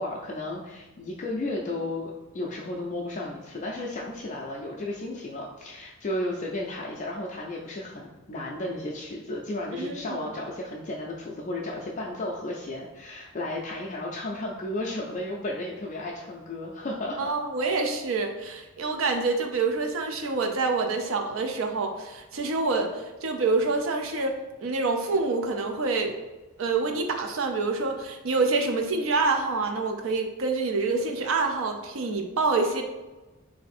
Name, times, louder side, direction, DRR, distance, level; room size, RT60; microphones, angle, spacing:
voice 1, 0.0-17.3, left 1 dB, 35° left, -2 dB, 0.3 m, -33 dB
voice 2, 9.7-10.2 17.2-24.3 24.6-26.2 26.6-32.8, right 3 dB, 65° right, 4 dB, 0.5 m, -27 dB
3.3 x 2.6 x 4.1 m, 1.1 s
head